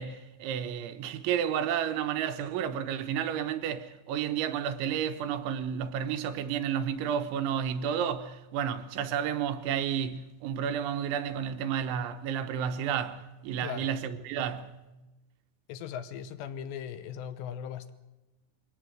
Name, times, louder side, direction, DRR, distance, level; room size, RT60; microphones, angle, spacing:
voice 1, 0.0-14.8, right 8 dB, 85° right, 3.4 m, -31 dB
voice 2, 15.7-17.9, left 8 dB, 80° left, 2.9 m, -38 dB
23.0 x 17.0 x 7.7 m
omnidirectional pair, 5.4 m